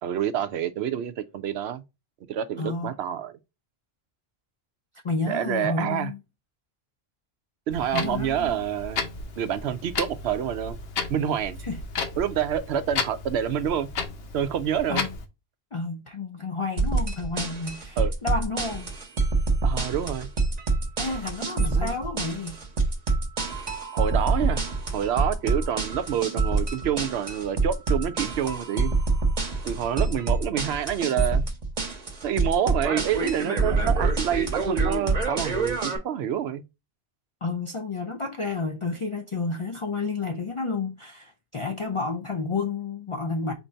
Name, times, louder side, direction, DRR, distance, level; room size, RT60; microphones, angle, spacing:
voice 1, 0.0-1.8 2.3-3.3 5.3-6.1 7.7-9.1 9.4-10.8 11.1-11.6 12.2-13.9 14.3-15.0 18.0-18.1 19.6-20.3 21.6-21.9 23.9-24.6 24.9-28.9 29.6-31.4 32.2-36.6, right 9 dB, 85° right, 0.8 m, -27 dB
voice 2, 2.6-2.9 5.0-6.2 7.9-8.6 11.6-11.8 14.9-15.1 15.7-18.9 21.0-22.6 37.4-43.5, left 3 dB, 40° left, 0.5 m, -30 dB
Clock, 7.7-15.3, left 4 dB, 75° left, 1.0 m, -34 dB
sound 1, 16.8-36.0, right 3 dB, 45° right, 1.0 m, -26 dB
4.3 x 2.7 x 4.3 m
omnidirectional pair, 1.1 m